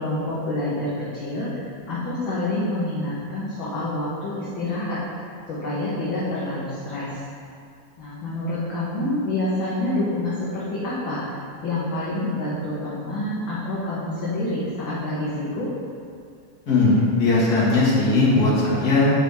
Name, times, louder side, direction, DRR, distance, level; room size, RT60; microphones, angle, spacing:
voice 1, 0.0-5.0 5.5-7.2 8.0-11.2 11.6-15.7, left 1 dB, 55° left, -9 dB, 1.4 m, -27 dB
voice 2, 16.7-19.1, left 3 dB, 40° left, -7 dB, 1.7 m, -18 dB
9.7 x 4.7 x 3.5 m, 2.4 s
omnidirectional pair, 3.5 m